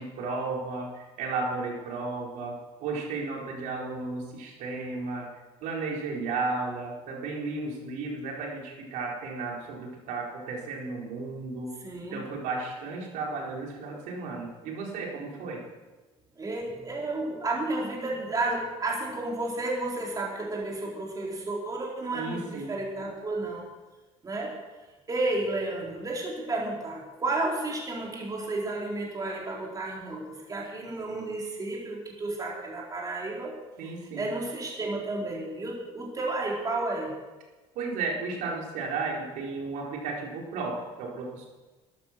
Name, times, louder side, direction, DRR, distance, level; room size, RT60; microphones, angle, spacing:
voice 1, 0.0-2.5 2.8-5.3 5.6-11.7 12.1-15.6 22.1-22.8 33.8-34.3 37.7-41.5, right 3 dB, 75° right, -1 dB, 4.2 m, -34 dB
voice 2, 11.8-12.2 16.4-23.7 24.2-24.5 25.1-33.5 33.8-33.9 34.2-37.1, right 2 dB, 25° right, -3 dB, 4.3 m, -32 dB
13.5 x 11.0 x 6.5 m, 1.2 s
cardioid pair, 110°, 13 cm